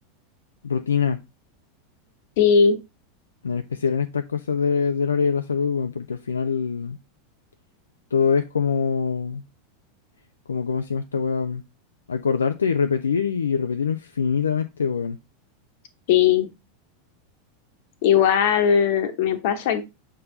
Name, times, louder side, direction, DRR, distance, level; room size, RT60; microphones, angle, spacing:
voice 1, 0.6-1.2 3.4-7.0 8.1-9.5 10.5-11.6 12.1-15.2, left 6 dB, 80° left, 0.4 m, -24 dB
voice 2, 2.4-2.8 16.1-16.5 18.0-19.9, left 7 dB, 55° left, 1.1 m, -18 dB
6.5 x 3.8 x 3.9 m
figure-of-eight pair, 90°, 0 cm